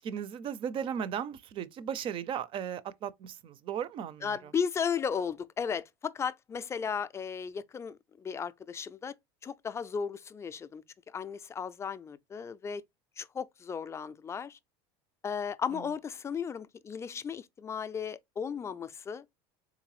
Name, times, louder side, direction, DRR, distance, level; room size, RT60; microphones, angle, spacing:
voice 1, 0.0-4.5 15.7-15.8, right 8 dB, 40° right, 0.5 m, -36 dB
voice 2, 4.2-9.1 9.4-12.8 13.2-14.6 15.2-19.3, left 6 dB, 20° left, 0.4 m, -35 dB
3.7 x 3.5 x 3.1 m
supercardioid pair, 120°, 13 cm